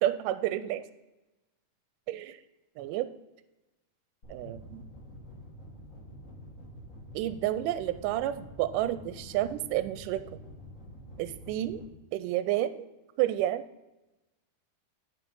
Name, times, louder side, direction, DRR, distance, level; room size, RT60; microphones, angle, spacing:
voice 1, 0.0-0.8 2.1-2.4 2.8-3.1 4.3-4.8 7.1-10.2 11.2-11.8 12.1-12.9 13.2-13.6, right 13 dB, 80° right, 12 dB, 2.0 m, -30 dB
sound 1, 4.2-11.9, left 1 dB, 65° left, 0.7 m, -48 dB
11.0 x 5.3 x 3.6 m, 1.0 s
omnidirectional pair, 3.9 m